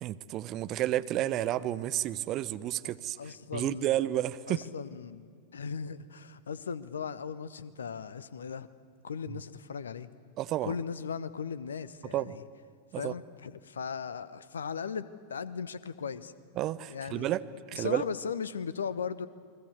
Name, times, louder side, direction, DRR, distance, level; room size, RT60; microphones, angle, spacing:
voice 1, 0.0-3.2 3.5-4.6 10.4-10.8 12.1-12.4 12.9-13.1 16.6-18.0, right 13 dB, 35° right, 14 dB, 0.9 m, -31 dB
voice 2, 3.2-3.9 4.5-8.7 9.0-10.1 10.6-12.4 13.0-16.3 16.9-17.4 17.7-19.3, left 6 dB, 70° left, 16 dB, 1.1 m, -37 dB
29.5 x 22.0 x 8.1 m, 2.2 s
figure-of-eight pair, 90°, 0 cm